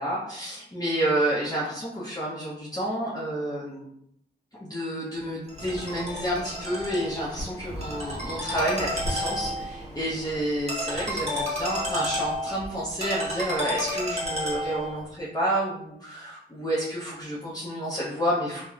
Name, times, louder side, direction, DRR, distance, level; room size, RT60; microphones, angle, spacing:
voice 1, 0.0-3.9 4.6-18.6, right 1 dB, 20° left, -8 dB, 0.8 m, -29 dB
Ringtone, 5.5-15.0, equal, 35° right, 1.0 m, -32 dB
2.8 x 2.1 x 2.4 m, 0.73 s
cardioid pair, 50°, 18 cm